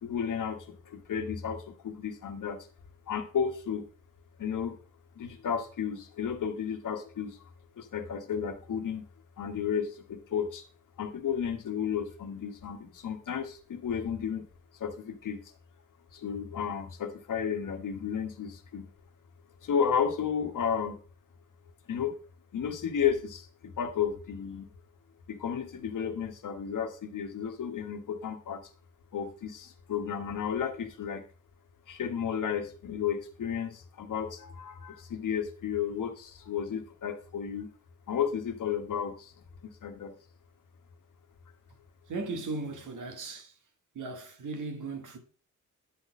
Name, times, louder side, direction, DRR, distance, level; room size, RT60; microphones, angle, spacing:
voice 1, 0.0-2.7 3.1-3.8 4.4-4.8 5.1-7.4 7.8-9.0 9.4-10.6 11.0-14.5 14.8-15.5 16.1-18.9 19.6-21.0 21.9-22.2 22.5-24.7 25.3-28.6 29.1-31.2 31.9-37.7 38.1-39.3 39.6-40.1, left 7 dB, 75° left, 1.2 m, -33 dB
voice 2, 42.1-43.6 43.9-45.2, right 3 dB, 70° right, 1.5 m, -37 dB
9.6 x 4.2 x 4.7 m
wide cardioid pair, 180°, 31 cm